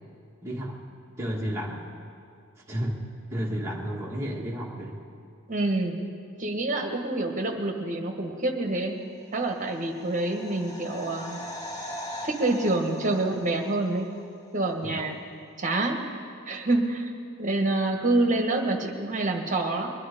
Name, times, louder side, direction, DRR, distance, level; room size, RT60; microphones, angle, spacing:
voice 1, 0.4-0.8 1.2-1.8 2.7-3.0 3.3-5.0 14.9-15.0, equal, 15° right, -4 dB, 1.6 m, -31 dB
voice 2, 5.5-6.0 6.4-9.0 9.3-11.4 12.2-14.1 14.5-15.2 15.6-16.0 16.5-17.1 17.4-19.9, right 2 dB, 35° right, 3 dB, 1.5 m, -27 dB
sound 1, 9.4-14.2 14.5-14.6, left 1 dB, 15° left, 1.7 m, -40 dB
22.0 x 11.0 x 5.2 m, 2.4 s
head